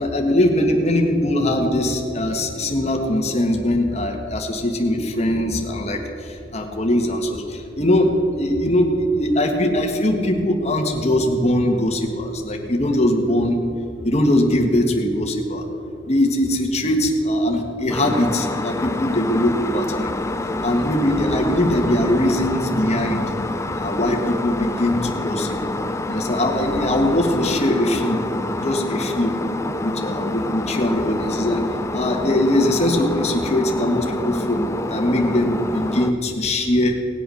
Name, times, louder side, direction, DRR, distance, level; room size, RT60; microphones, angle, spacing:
voice 1, 0.0-6.0 6.5-7.4 7.8-13.6 14.0-15.6 16.1-20.1 20.6-23.3 23.8-25.6 26.1-28.2 28.6-29.3 29.8-31.6 31.9-34.6 34.9-36.9, left 1 dB, 35° left, 2 dB, 1.7 m, -21 dB
sound 1, 17.9-36.1, left 2 dB, 15° left, 0.5 m, -27 dB
18.5 x 8.1 x 6.4 m, 2.5 s
head